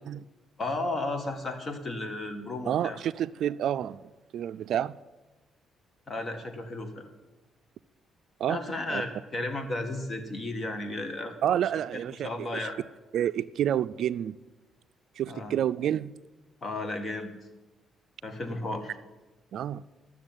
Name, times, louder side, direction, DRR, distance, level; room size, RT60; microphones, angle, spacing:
voice 1, 0.6-3.0 6.1-7.1 8.5-11.6 11.9-12.8 15.2-15.6 16.6-17.3 18.2-18.9, left 2 dB, 35° left, 2.0 m, -34 dB
voice 2, 2.6-4.0 4.3-5.0 8.4-8.6 8.9-9.0 11.4-12.7 13.1-14.4 15.2-16.1 19.5-19.8, right 10 dB, 70° right, 0.4 m, -29 dB
13.0 x 7.0 x 9.0 m
cardioid pair, 90°, 0 cm